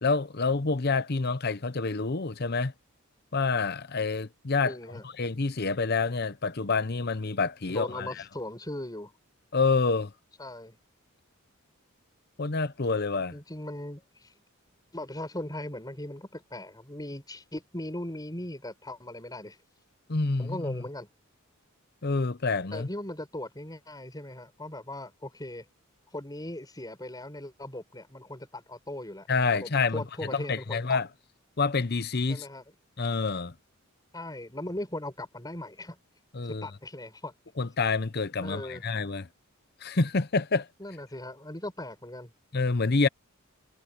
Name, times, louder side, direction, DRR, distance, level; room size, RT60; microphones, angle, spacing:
voice 1, 0.0-2.7 3.3-4.8 5.2-8.1 9.5-10.1 12.4-13.4 20.1-20.8 22.0-22.9 29.3-30.0 30.3-31.1 31.6-32.5 33.0-33.5 36.3-36.7 37.6-39.3 39.8-40.7 42.5-43.1, left 4 dB, 50° left, 0.8 m, -27 dB
voice 2, 4.6-5.0 7.7-9.1 10.4-10.8 13.3-14.3 14.9-19.6 20.4-21.1 22.7-25.7 26.1-29.3 29.5-31.0 32.3-32.6 34.1-36.0 36.5-37.3 38.4-38.8 40.8-42.3, left 1 dB, 20° left, 5.0 m, -39 dB
head